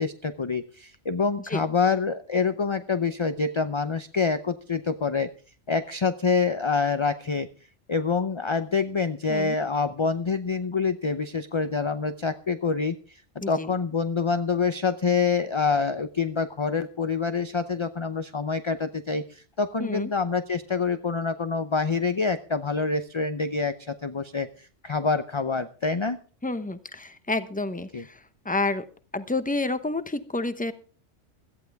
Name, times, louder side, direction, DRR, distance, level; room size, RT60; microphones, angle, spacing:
voice 1, 0.0-5.3 5.7-7.5 7.9-13.2 13.5-26.2 27.9-28.0, left 5 dB, 30° left, 10 dB, 0.5 m, -26 dB
voice 2, 13.4-13.7 19.8-20.1 26.4-28.9 29.1-30.7, left 2 dB, 10° left, 11 dB, 0.8 m, -29 dB
17.0 x 14.0 x 3.5 m, 0.39 s
omnidirectional pair, 1.3 m